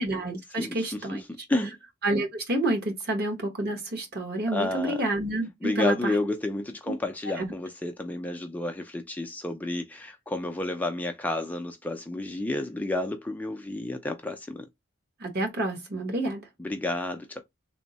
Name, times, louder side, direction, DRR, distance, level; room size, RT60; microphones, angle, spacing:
voice 1, 0.0-1.2 2.0-6.1 7.4-7.5 15.2-16.4, right 1 dB, 50° right, 1.2 m, -29 dB
voice 2, 0.5-1.8 4.5-5.0 5.6-14.7 16.6-17.4, left 2 dB, 10° left, 0.3 m, -31 dB
3.4 x 2.0 x 3.9 m
head